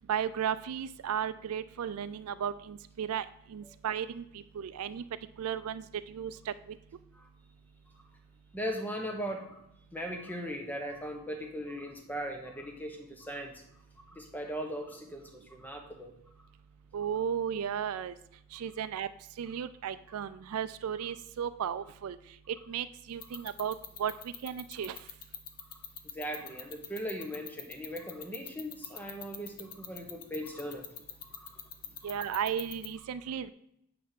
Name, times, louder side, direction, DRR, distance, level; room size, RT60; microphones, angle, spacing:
voice 1, 0.1-5.0 5.4-6.5 16.9-18.1 18.5-19.1 19.4-22.2 22.5-24.1 24.4-25.0 32.0-33.5, right 8 dB, 85° right, 13 dB, 0.4 m, -35 dB
voice 2, 8.5-9.6 9.9-13.5 14.1-16.1 23.3-23.4 26.1-30.8 31.2-31.6 32.0-32.1, equal, 10° left, 3 dB, 0.9 m, -39 dB
sound 1, 23.2-32.9, left 10 dB, 40° left, 0.6 m, -41 dB
9.4 x 3.4 x 5.8 m, 0.77 s
head